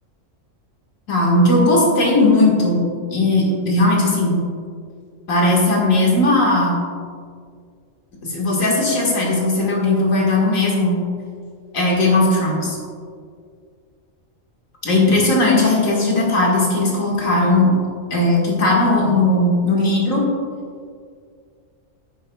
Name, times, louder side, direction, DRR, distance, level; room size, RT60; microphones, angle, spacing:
voice 1, 1.1-4.4 5.3-6.8 8.2-11.0 11.7-12.8 14.8-17.7 18.1-20.3, left 2 dB, 85° left, -3 dB, 2.2 m, -17 dB
11.0 x 8.9 x 2.3 m, 2.1 s
omnidirectional pair, 1.4 m